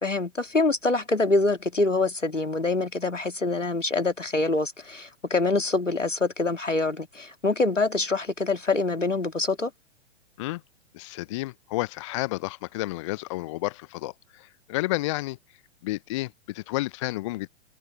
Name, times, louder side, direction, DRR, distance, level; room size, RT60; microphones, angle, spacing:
voice 1, 0.0-9.7, left 3 dB, 90° left, 2.2 m, -25 dB
voice 2, 10.9-15.4 15.8-17.5, left 19 dB, 25° left, 0.5 m, -31 dB
figure-of-eight pair, 115°, 36 cm